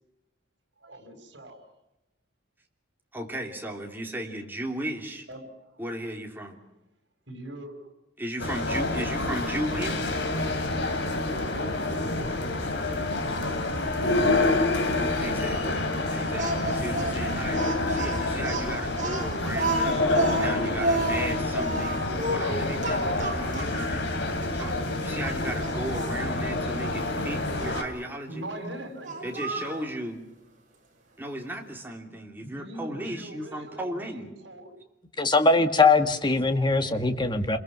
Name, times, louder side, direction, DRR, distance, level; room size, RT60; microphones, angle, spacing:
voice 1, 0.8-1.6 5.3-5.8 7.3-7.9 19.9-20.5 28.0-29.9 32.1-34.7 36.6-37.0, right 1 dB, 65° right, 5 dB, 5.2 m, -42 dB
voice 2, 3.1-5.3 5.8-6.6 8.2-10.1 15.2-15.8 16.1-20.1 20.4-22.0 22.3-28.4 29.2-30.2 31.2-34.3, right 1 dB, 10° right, 1 dB, 3.2 m, -35 dB
sound 1, 8.4-27.8, left 2 dB, 65° left, 3.1 m, -28 dB
Speech, 16.4-24.0 24.6-24.7 25.2-26.2 27.6-27.9 29.0-29.8, right 2 dB, 40° right, 6.0 m, -30 dB
voice 3, 35.2-37.6, left 3 dB, 25° left, 8 dB, 1.6 m, -21 dB
28.5 x 22.5 x 6.1 m, 0.94 s
head